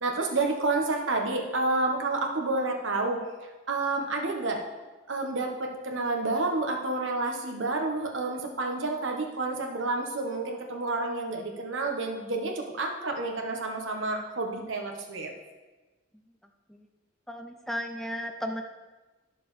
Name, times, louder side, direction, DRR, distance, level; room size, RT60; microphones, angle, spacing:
voice 1, 0.0-3.2 3.7-4.6 5.1-15.3, right 2 dB, 70° right, 2 dB, 1.2 m, -29 dB
voice 2, 17.3-18.6, equal, ahead, 4 dB, 0.4 m, -34 dB
11.0 x 6.9 x 3.3 m, 1.2 s
head